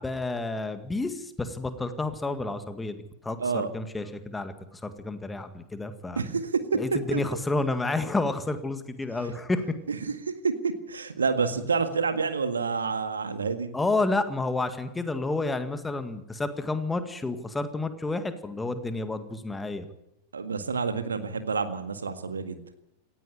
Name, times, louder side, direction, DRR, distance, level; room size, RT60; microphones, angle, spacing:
voice 1, 0.0-6.2 6.7-9.8 13.7-19.9, left 2 dB, 10° left, 9 dB, 1.9 m, -30 dB
voice 2, 6.2-6.5 7.1-7.2 9.9-10.1 10.4-13.7 20.3-22.6, right 5 dB, 70° right, 9 dB, 1.8 m, -28 dB
18.0 x 15.0 x 9.6 m, 0.83 s
figure-of-eight pair, 90°, 0 cm